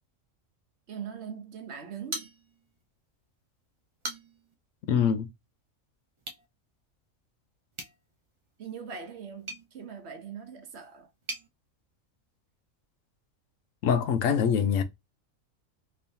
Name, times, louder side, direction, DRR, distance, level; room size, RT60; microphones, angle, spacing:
voice 1, 0.9-2.3 8.6-11.1, right 7 dB, 60° right, 1.0 m, -41 dB
sound 1, 2.1-2.9 3.2-3.3 3.8-4.5 6.2-6.5 7.7-11.5, right 2 dB, 35° right, 0.5 m, -42 dB
voice 2, 4.9-5.3 13.8-14.8, left 7 dB, 85° left, 1.0 m, -24 dB
3.4 x 3.0 x 2.6 m
omnidirectional pair, 1.3 m